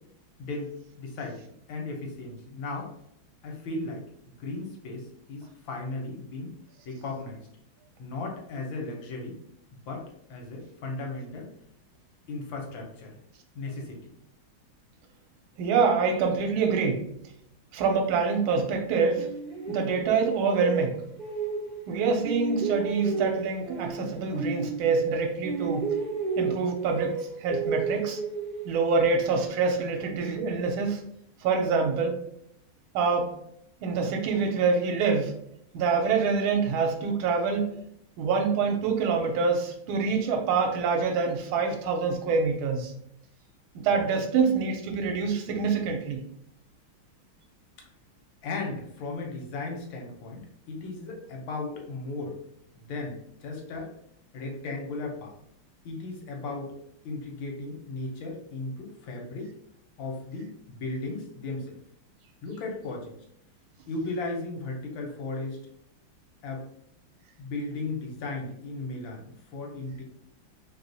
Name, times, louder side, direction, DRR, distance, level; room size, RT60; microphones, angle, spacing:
voice 1, 0.4-0.7 1.0-2.9 3.4-6.6 6.8-7.5 8.0-9.4 9.7-11.5 12.3-13.2 13.5-14.0 48.4-52.4 52.8-53.9 54.3-55.3 55.8-56.8 57.0-59.5 60.0-61.8 62.4-63.1 63.9-65.6 66.4-66.7 67.4-70.0, left 3 dB, 70° left, 0 dB, 1.4 m, -36 dB
voice 2, 15.6-17.0 17.7-19.3 19.7-21.0 21.9-25.9 26.4-28.2 28.6-31.0 31.4-32.2 32.9-33.3 33.8-35.3 35.7-37.8 38.2-42.9 43.8-46.2, right 5 dB, 80° right, 3 dB, 1.4 m, -26 dB
sound 1, 19.2-21.9 22.2-25.2 25.4-29.0, right 4 dB, 65° right, 0.5 m, -32 dB
3.4 x 2.8 x 2.6 m, 0.73 s
omnidirectional pair, 2.3 m